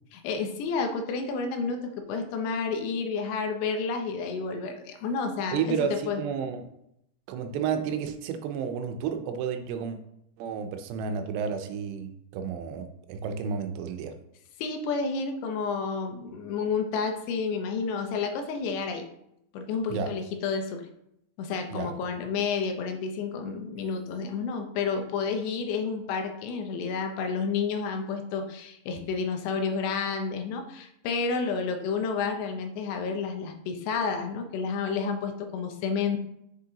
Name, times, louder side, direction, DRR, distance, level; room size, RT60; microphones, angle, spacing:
voice 1, 0.1-6.2 14.6-19.1 19.5-20.9 21.4-36.2, left 5 dB, 85° left, 5 dB, 3.0 m, -30 dB
voice 2, 5.5-6.7 7.3-10.0 10.4-14.1 19.9-20.1 21.7-21.9, right 6 dB, 85° right, 6 dB, 2.9 m, -31 dB
7.5 x 6.4 x 2.8 m, 0.77 s
omnidirectional pair, 4.8 m